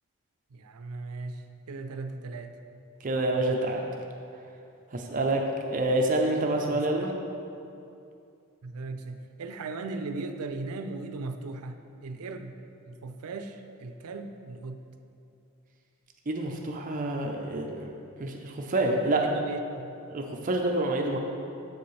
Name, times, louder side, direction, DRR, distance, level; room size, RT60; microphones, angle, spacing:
voice 1, 0.5-2.6 6.7-7.2 8.6-12.6 12.9-14.8 19.2-19.9, right 3 dB, 85° right, 8 dB, 0.5 m, -38 dB
voice 2, 3.0-3.8 4.9-7.1 16.3-17.9 18.2-19.3 20.1-21.2, right 2 dB, 35° right, 1 dB, 0.5 m, -27 dB
7.7 x 7.0 x 3.2 m, 2.6 s
head